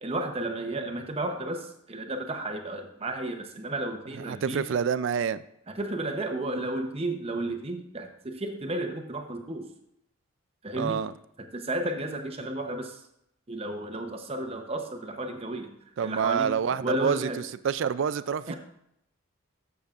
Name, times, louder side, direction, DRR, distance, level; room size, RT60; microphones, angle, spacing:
voice 1, 0.0-4.7 5.7-9.6 10.6-11.0 11.5-13.0 13.5-15.7 16.0-17.4 18.5-18.6, right 1 dB, 25° right, 5 dB, 0.8 m, -33 dB
voice 2, 4.3-5.4 10.8-11.1 16.0-17.3 17.6-18.5, right 7 dB, 60° right, 15 dB, 0.3 m, -27 dB
11.5 x 6.9 x 2.4 m, 0.76 s
head